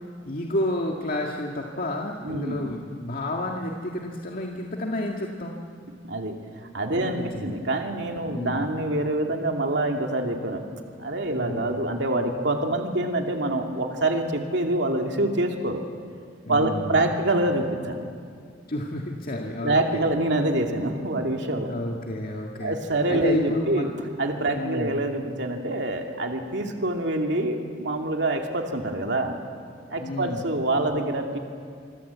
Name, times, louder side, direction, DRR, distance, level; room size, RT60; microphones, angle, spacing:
voice 1, 0.3-5.6 7.0-7.6 8.2-8.7 11.3-11.8 16.4-17.0 18.7-20.0 21.7-22.8 23.1-23.9 24.5-24.9 30.0-30.4, left 1 dB, 50° left, 0 dB, 1.9 m, -30 dB
voice 2, 2.2-2.7 6.1-10.6 11.0-15.8 16.5-18.0 19.6-21.7 22.6-23.9 24.2-29.4 29.9-31.4, right 1 dB, 65° right, 3 dB, 2.6 m, -26 dB
27.0 x 24.0 x 8.4 m, 2.2 s
head